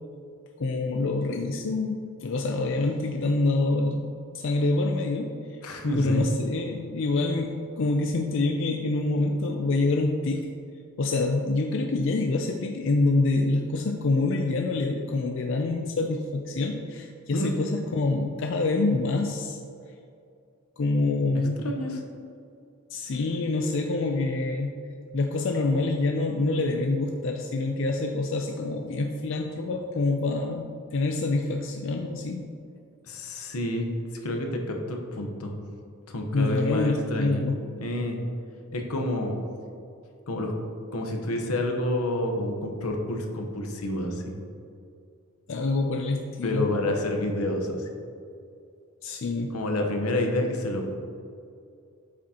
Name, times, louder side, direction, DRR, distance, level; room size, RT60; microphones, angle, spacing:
voice 1, 0.6-4.1 4.3-5.6 6.0-10.5 11.0-19.6 20.8-21.6 22.9-24.7 25.1-32.5 36.3-37.6 45.5-46.7 49.0-49.5, left 2 dB, 60° left, 3 dB, 0.4 m, -26 dB
voice 2, 5.6-6.2 17.3-17.5 21.6-22.0 33.0-33.9 34.2-35.5 36.1-37.5 37.8-38.2 38.7-39.4 40.3-40.5 40.9-44.3 46.4-47.9 49.5-50.9, left 1 dB, 90° left, 2 dB, 1.0 m, -28 dB
8.3 x 6.0 x 2.9 m, 2.5 s
head